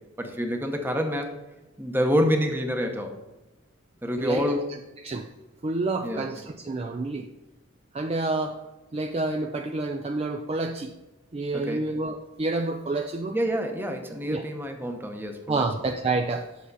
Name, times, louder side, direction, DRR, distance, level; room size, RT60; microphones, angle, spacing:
voice 1, 0.2-1.3 1.8-3.1 4.0-4.6 6.0-6.3 11.5-11.9 13.3-15.6, equal, 10° right, 4 dB, 0.8 m, -27 dB
voice 2, 4.2-4.6 5.0-5.3 5.6-7.3 7.9-8.6 8.9-10.9 11.3-13.4 14.3-14.4 15.5-16.5, right 2 dB, 30° right, 4 dB, 0.4 m, -29 dB
8.2 x 6.3 x 4.0 m, 1.0 s
head